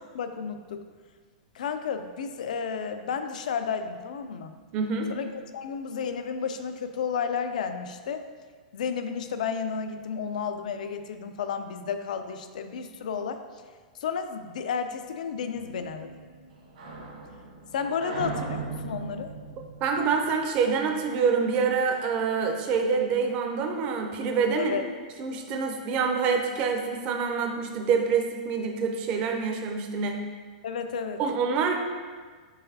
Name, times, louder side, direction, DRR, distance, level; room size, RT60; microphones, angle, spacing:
voice 1, 0.1-0.8 1.5-4.5 5.1-8.3 8.7-13.4 14.0-16.1 17.7-19.3 24.6-24.8 30.6-31.2, left 6 dB, 75° left, 8 dB, 0.4 m, -32 dB
voice 2, 4.7-5.1 19.8-24.8 25.2-30.2 31.2-31.8, right 5 dB, 25° right, 3 dB, 0.4 m, -26 dB
sound 1, 15.5-21.0, right 4 dB, 80° right, 1.3 m, -39 dB
4.6 x 3.9 x 2.7 m, 1.5 s
supercardioid pair, 170°, 4 cm